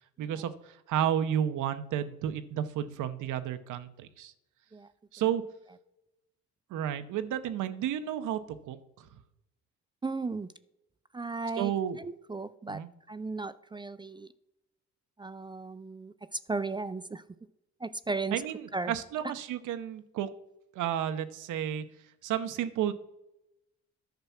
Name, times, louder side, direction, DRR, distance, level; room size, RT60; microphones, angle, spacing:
voice 1, 0.2-4.3 5.1-5.4 6.7-8.4 8.7-8.8 11.6-12.0 12.7-12.9 18.3-18.6 18.9-20.3 20.7-21.9 22.2-22.9, right 10 dB, 80° right, 11 dB, 0.8 m, -31 dB
voice 2, 10.0-10.5 11.1-11.7 12.0-12.8 13.1-14.3 15.2-17.2 17.8-18.4 18.7-18.9 19.2-19.3, right 3 dB, 15° right, 14 dB, 0.4 m, -35 dB
10.5 x 6.0 x 5.8 m, 0.90 s
cardioid pair, 90°, 30 cm